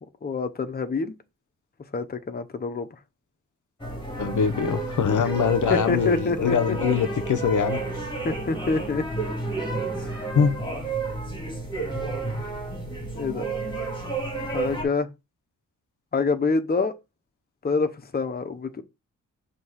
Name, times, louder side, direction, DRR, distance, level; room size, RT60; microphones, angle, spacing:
voice 1, 0.2-1.1 1.9-2.9 5.2-5.3 5.7-6.6 8.2-9.0 10.0-10.2 13.2-13.5 14.5-15.1 16.1-16.9 17.6-18.8, left 4 dB, 30° left, 0.7 m, -26 dB
sound 1, 3.8-14.8, right 3 dB, 15° left, 2.0 m, -31 dB
voice 2, 4.2-7.8 10.3-10.6, left 7 dB, 70° left, 0.8 m, -23 dB
6.2 x 2.9 x 5.6 m
wide cardioid pair, 145°, 32 cm